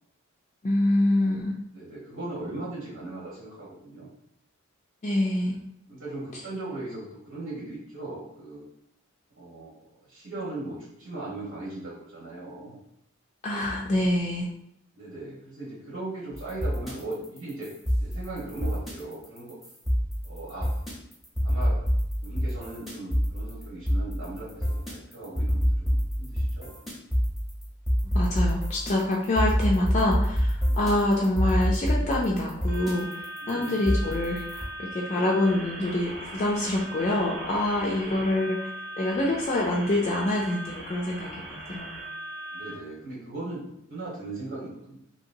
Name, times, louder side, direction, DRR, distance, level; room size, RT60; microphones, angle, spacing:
voice 1, 0.6-1.5 5.0-5.6 13.4-14.5 28.1-33.2 33.5-38.7 39.0-42.0, left 1 dB, 35° left, -2 dB, 0.4 m, -26 dB
voice 2, 1.7-4.1 5.9-8.6 9.4-9.7 10.1-12.8 14.9-17.7 18.0-19.5 20.2-20.8 21.4-21.8 22.2-26.7 30.7-30.9 33.4-33.8 37.8-38.3 42.5-45.0, right 2 dB, 85° right, -7 dB, 1.3 m, -38 dB
sound 1, 16.3-34.6, equal, ahead, 0.7 m, -27 dB
sound 2, 32.7-42.7, right 1 dB, 55° right, 0.7 m, -39 dB
2.8 x 2.8 x 2.6 m, 0.77 s
head